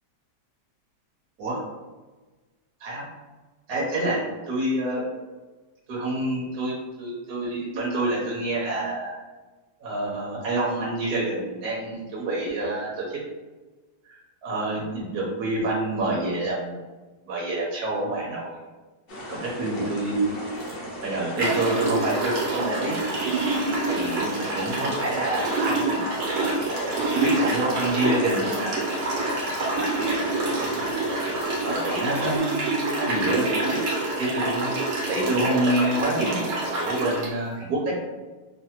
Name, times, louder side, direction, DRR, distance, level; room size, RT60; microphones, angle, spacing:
voice 1, 3.7-4.2 4.5-5.0 5.9-9.1 9.8-13.2 14.0-16.8 17.3-18.5 19.3-20.4 21.0-23.0 23.9-26.0 26.4-26.6 27.1-28.7 29.2-29.4 29.7-30.9 31.6-32.7 33.0-33.8 34.2-34.8 35.1-38.0, right 2 dB, 70° right, -5 dB, 1.1 m, -27 dB
sound 1, 19.1-32.4, equal, 60° left, 0.6 m, -37 dB
sound 2, 20.6-20.7 21.4-37.3, right 2 dB, 85° right, 1.5 m, -27 dB
3.2 x 2.0 x 2.8 m, 1.2 s
omnidirectional pair, 1.8 m